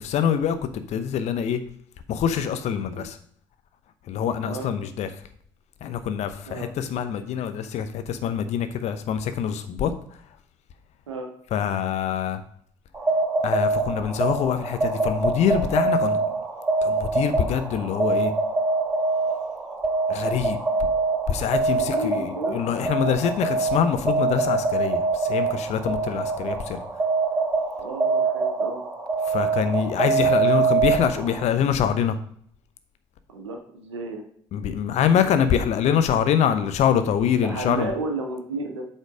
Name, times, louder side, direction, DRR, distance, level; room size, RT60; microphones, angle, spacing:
voice 1, 0.0-1.6 2.1-3.2 4.1-5.1 5.8-9.9 11.5-12.4 13.4-16.2 16.8-18.3 20.1-20.6 21.3-26.8 29.2-32.2 34.5-37.9, left 8 dB, 50° left, 10 dB, 0.9 m, -24 dB
sound 1, 12.9-31.4, right 4 dB, 20° right, 3.5 m, -24 dB
voice 2, 21.8-22.6 27.8-28.8 33.3-34.3 37.3-38.8, right 2 dB, 75° right, 2 dB, 1.2 m, -32 dB
8.1 x 4.4 x 5.0 m, 0.62 s
figure-of-eight pair, 50°, 15 cm